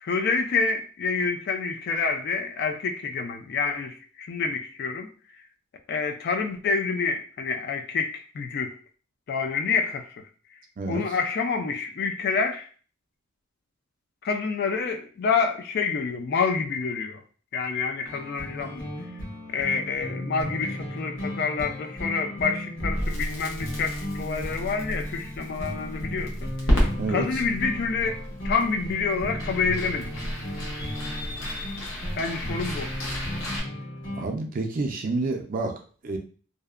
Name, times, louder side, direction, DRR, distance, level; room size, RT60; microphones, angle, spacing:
voice 1, 0.0-5.1 5.9-8.8 9.3-10.2 10.9-12.7 14.2-17.2 17.5-18.9 19.5-28.2 28.4-30.3 32.2-32.9, left 5 dB, 55° left, 5 dB, 0.3 m, -28 dB
sound 1, 18.0-34.2, equal, 70° left, 1.0 m, -36 dB
Crackle, 22.8-33.6, equal, 90° left, 0.8 m, -31 dB
voice 2, 27.0-27.4 34.2-36.2, right 3 dB, 45° right, 3 dB, 0.4 m, -29 dB
2.6 x 2.1 x 2.4 m, 0.41 s
head